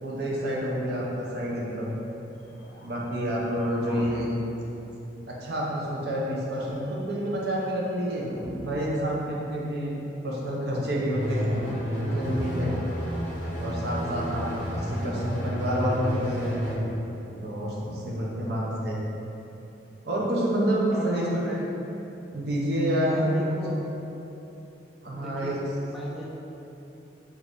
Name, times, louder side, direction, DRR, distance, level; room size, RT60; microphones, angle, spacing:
voice 1, 0.0-2.0 2.8-4.3 5.3-8.3 8.6-10.0 10.2-12.7 13.6-14.5 14.7-16.8 17.4-19.0 20.0-21.5 22.3-23.4 25.0-25.6, equal, 60° right, -4 dB, 0.6 m, -28 dB
sound 1, 2.3-5.6 6.7-9.9, equal, 45° left, 0.6 m, -46 dB
voice 2, 3.9-4.3 20.9-21.7 23.1-23.9 25.1-25.5 25.8-26.3, left 1 dB, ahead, -6 dB, 0.3 m, -37 dB
sound 2, 11.1-16.7, equal, 85° right, 0.9 m, -31 dB
3.0 x 2.5 x 3.5 m, 3.0 s
head